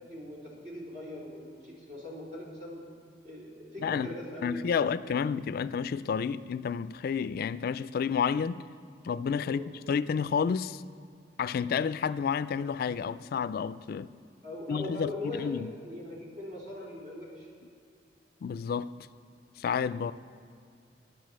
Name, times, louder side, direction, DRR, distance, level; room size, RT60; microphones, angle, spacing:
voice 1, 0.0-2.9 3.2-4.9 9.4-9.7 14.4-17.5, left 1 dB, 60° right, 3.9 m, -41 dB
voice 2, 3.8-4.1 4.4-8.6 9.0-10.8 11.4-14.1 14.7-15.7 18.4-18.9 19.6-20.1, left 6 dB, 55° left, 0.3 m, -30 dB
11.0 x 9.9 x 7.5 m
head